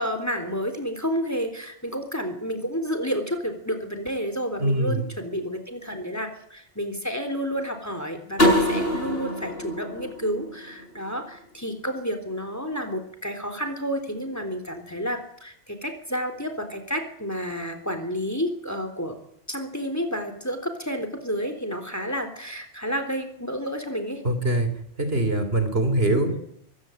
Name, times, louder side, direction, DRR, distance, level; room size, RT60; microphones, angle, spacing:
voice 1, 0.0-19.2 19.5-24.2 26.3-26.4, equal, 15° left, 7 dB, 3.5 m, -30 dB
voice 2, 4.6-5.0 24.2-24.7 25.0-26.4, right 1 dB, 60° right, 9 dB, 3.5 m, -23 dB
sound 1, 8.4-11.2, equal, 60° left, 6.8 m, -24 dB
23.5 x 15.5 x 9.1 m, 0.68 s
omnidirectional pair, 1.2 m